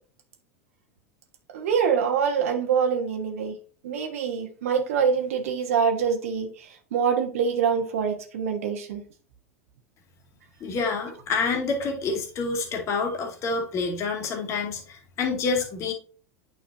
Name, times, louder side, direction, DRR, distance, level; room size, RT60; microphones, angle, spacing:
voice 1, 1.5-3.6 3.8-9.0, right 6 dB, 70° right, 4 dB, 1.2 m, -25 dB
voice 2, 10.6-15.9, left 4 dB, 40° left, 2 dB, 2.2 m, -28 dB
8.8 x 5.5 x 2.7 m, 0.41 s
hypercardioid pair, 85°, 8 cm